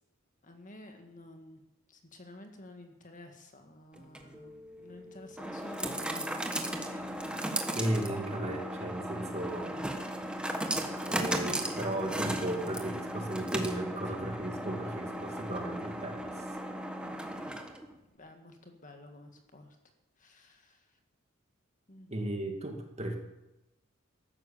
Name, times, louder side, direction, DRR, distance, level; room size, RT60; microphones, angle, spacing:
voice 1, 0.4-1.6 1.9-7.2 17.0-17.6 18.1-19.8 20.2-21.0 21.9-22.1, left 1 dB, 40° left, 5 dB, 1.9 m, -52 dB
sound 1, 4.0-17.9, right 1 dB, 5° right, 1.3 m, -36 dB
voice 2, 7.7-9.7 11.0-16.4 22.1-23.2, right 1 dB, 30° right, 3 dB, 2.3 m, -35 dB
14.5 x 12.0 x 7.2 m, 0.93 s
head